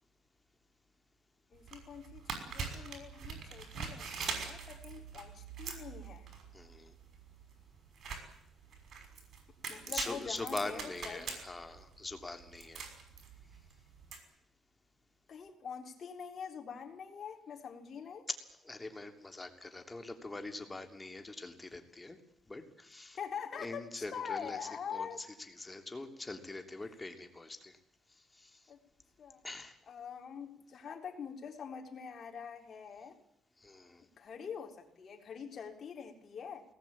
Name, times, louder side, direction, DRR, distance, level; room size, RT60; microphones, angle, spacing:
voice 1, 1.5-6.3 9.7-11.3 15.3-18.3 23.2-25.2 28.7-28.8 29.2-29.4 29.9-33.2 34.0-36.7, left 7 dB, 55° left, 3 dB, 4.1 m, -44 dB
sound 1, 1.5-14.2, right 5 dB, 55° right, 6.0 m, -43 dB
voice 2, 6.5-6.9 9.8-12.8 18.6-22.2 22.5-23.2 23.6-24.6 24.9-25.1 25.6-27.8 28.3-28.6 29.4-29.8 33.6-34.0, left 2 dB, 20° left, 6 dB, 3.2 m, -43 dB
22.0 x 19.5 x 8.7 m, 0.78 s
cardioid pair, 90°, 0 cm